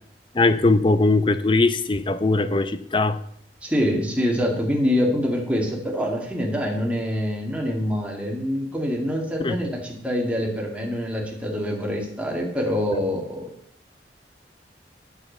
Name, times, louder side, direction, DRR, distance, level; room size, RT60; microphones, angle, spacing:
voice 1, 0.3-3.2 9.4-9.6 12.9-13.0, left 3 dB, 30° left, 0.6 m, -20 dB
voice 2, 3.6-13.5, equal, 5° right, 2.1 m, -25 dB
8.3 x 7.1 x 6.6 m
head